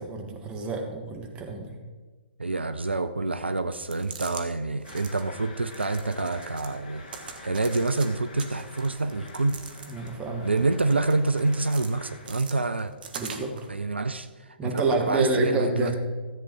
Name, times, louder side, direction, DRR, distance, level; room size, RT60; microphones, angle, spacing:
voice 1, 0.0-1.7 9.9-10.5 13.2-13.7 14.6-15.9, right 3 dB, 15° right, 1 dB, 1.9 m, -28 dB
voice 2, 2.4-7.1 7.4-9.6 10.4-12.9 13.7-16.0, right 3 dB, 80° right, 11 dB, 0.6 m, -27 dB
sound 1, 3.7-4.4 4.8-5.2 5.7-6.7 7.1-8.1 8.4-10.2 10.6-11.9 12.2-13.7, right 5 dB, 55° right, 1.5 m, -42 dB
sound 2, 4.8-12.4, left 2 dB, 40° left, 2.1 m, -46 dB
14.0 x 8.4 x 4.6 m, 1.4 s
figure-of-eight pair, 120°, 6 cm